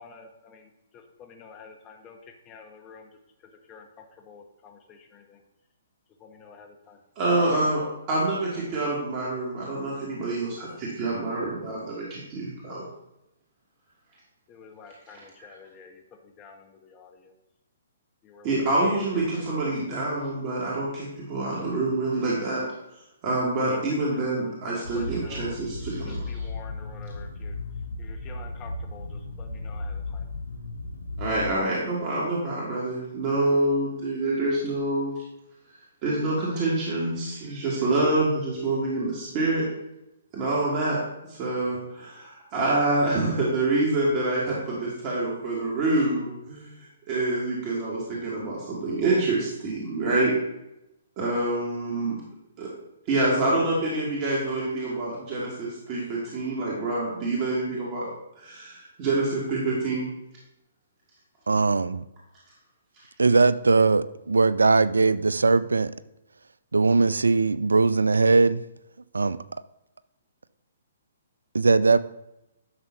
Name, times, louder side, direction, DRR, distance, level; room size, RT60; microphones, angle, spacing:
voice 1, 0.0-2.2 2.5-3.1 3.7-5.4 6.2-7.0 14.5-17.3 18.2-18.9 19.1-19.7 23.7-23.8 24.1-25.6 26.1-27.6 28.0-30.2, left 5 dB, 25° left, 4 dB, 0.9 m, -49 dB
voice 2, 7.2-7.8 8.1-12.8 15.1-15.2 18.4-22.6 23.2-26.3 31.2-35.1 36.0-39.7 40.3-41.0 41.3-46.7 47.1-50.3 51.2-52.2 52.6-52.7 53.1-58.1 58.4-60.1, right 2 dB, 35° right, -6 dB, 2.5 m, -26 dB
sound 1, 24.8-31.5, left 2 dB, 80° left, 1.0 m, -35 dB
voice 3, 61.5-62.0 63.2-65.9 66.7-68.6 69.1-69.4 71.5-72.0, right 3 dB, 80° right, 16 dB, 0.4 m, -20 dB
11.0 x 6.8 x 2.9 m, 0.88 s
figure-of-eight pair, 130°, 0 cm